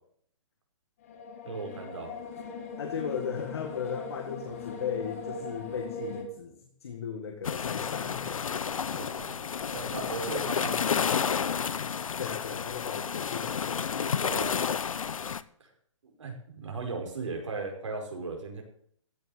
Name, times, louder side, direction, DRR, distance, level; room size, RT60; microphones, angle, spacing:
sound 1, 1.0-6.2, left 3 dB, 25° left, 1.8 m, -40 dB
voice 1, 1.4-2.1 8.9-9.4 9.7-11.3 13.9-14.5 15.6-15.7 16.0-18.6, right 3 dB, 65° right, 2 dB, 5.3 m, -37 dB
voice 2, 2.8-6.5 6.8-8.3 12.2-13.8, left 7 dB, 50° left, 5 dB, 1.8 m, -36 dB
sound 2, 7.4-15.4, left 7 dB, 90° left, 0.8 m, -31 dB
15.5 x 7.0 x 7.9 m, 0.64 s
hypercardioid pair, 180°, 17 cm